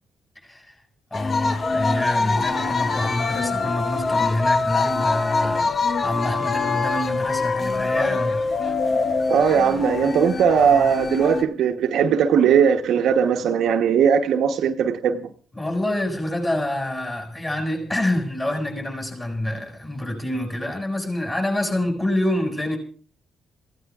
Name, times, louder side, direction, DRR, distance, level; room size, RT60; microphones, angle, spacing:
voice 1, 0.4-0.7 1.1-8.4 15.5-22.8, left 1 dB, 20° left, 7.3 m, -26 dB
sound 1, 1.1-11.4, left 4 dB, 40° left, 0.8 m, -24 dB
voice 2, 9.3-15.3, right 7 dB, 75° right, 1.1 m, -19 dB
26.5 x 16.0 x 2.4 m
cardioid pair, 90°, 0 cm